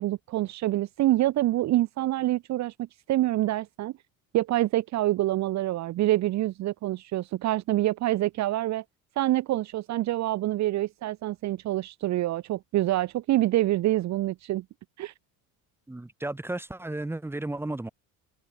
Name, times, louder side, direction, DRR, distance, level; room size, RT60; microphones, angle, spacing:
voice 1, 0.0-3.9 4.3-8.8 9.2-14.6 15.0-15.1, right 15 dB, 50° right, 1.1 m, -26 dB
voice 2, 15.9-17.9, right 2 dB, 5° right, 2.9 m, -33 dB
cardioid pair, 150°, 36 cm